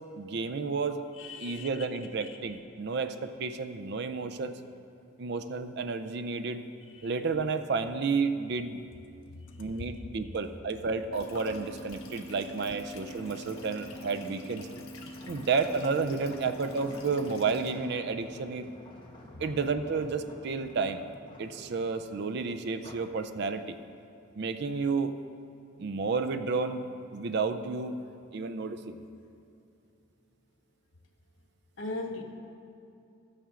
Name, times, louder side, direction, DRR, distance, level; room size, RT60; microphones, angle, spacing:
voice 1, 0.2-1.0 1.4-4.6 5.2-6.6 7.0-8.8 9.6-14.7 15.3-18.7 19.4-21.0 21.4-23.8 24.4-25.1 25.8-26.8 27.1-27.9 28.3-29.0, right 4 dB, 55° right, 9 dB, 0.4 m, -31 dB
voice 2, 1.2-1.7 2.1-2.3 7.0-7.1 9.5-9.7 31.8-32.2, left 2 dB, 65° left, 2 dB, 0.9 m, -38 dB
sound 1, 11.1-17.7, left 1 dB, 80° left, 1.2 m, -45 dB
sound 2, 13.0-23.2 23.6-23.9, left 1 dB, 25° left, 1.0 m, -51 dB
12.5 x 8.7 x 3.7 m, 2.6 s
head